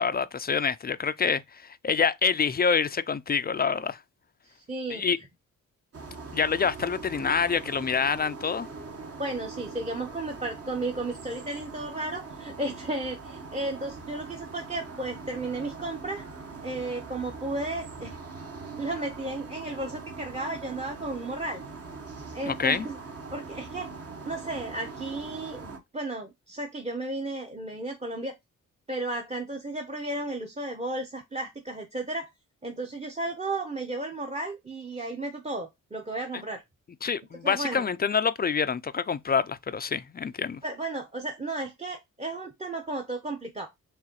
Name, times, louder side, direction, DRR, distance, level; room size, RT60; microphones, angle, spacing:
voice 1, 0.0-4.0 4.9-5.2 6.3-8.7 22.5-22.9 37.0-40.6, left 6 dB, 30° left, 0.4 m, -26 dB
voice 2, 4.4-5.3 9.2-16.2 16.6-18.2 18.8-21.6 22.3-23.0 23.3-23.9 24.2-28.3 28.9-32.3 32.6-36.6 37.4-37.8 40.6-43.7, right 2 dB, 20° right, 0.8 m, -34 dB
sound 1, 5.9-25.8, right 4 dB, 45° right, 1.2 m, -42 dB
4.8 x 3.3 x 3.0 m
cardioid pair, 65°, 32 cm